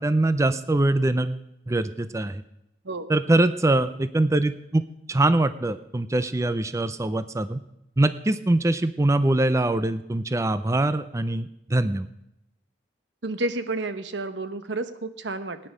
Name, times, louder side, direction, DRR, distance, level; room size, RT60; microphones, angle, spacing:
voice 1, 0.0-2.4 3.1-4.8 5.1-7.6 8.0-12.1, right 2 dB, 15° right, 13 dB, 0.4 m, -23 dB
voice 2, 13.2-15.7, right 2 dB, 80° right, 11 dB, 1.0 m, -30 dB
17.0 x 9.7 x 5.0 m, 0.84 s
head